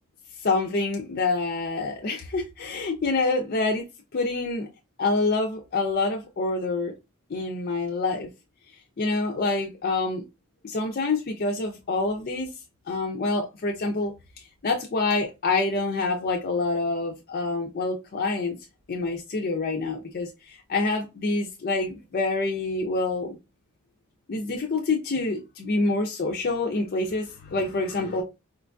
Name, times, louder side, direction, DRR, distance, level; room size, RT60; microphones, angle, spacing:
voice 1, 0.4-3.8 4.1-4.7 5.0-6.9 7.3-8.3 9.0-10.2 10.6-12.5 12.9-14.1 14.6-18.6 18.9-23.4 24.3-28.2, left 3 dB, 45° left, 0.5 m, -26 dB
4.4 x 2.5 x 2.2 m
head